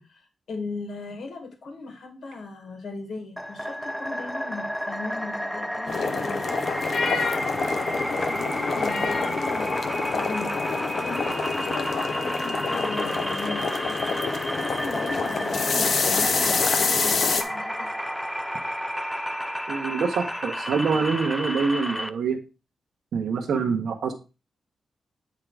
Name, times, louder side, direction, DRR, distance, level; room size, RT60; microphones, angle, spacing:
voice 1, 0.1-6.4 6.7-17.9, left 3 dB, 70° left, 4 dB, 1.9 m, -38 dB
sound 1, 3.4-22.1, equal, 5° left, 0.4 m, -31 dB
sound 2, 5.9-17.4, left 4 dB, 55° left, 0.8 m, -27 dB
voice 2, 19.7-22.4 23.1-24.1, right 5 dB, 80° right, 3 dB, 0.9 m, -25 dB
8.6 x 3.8 x 4.8 m, 0.30 s
wide cardioid pair, 140°, 0 cm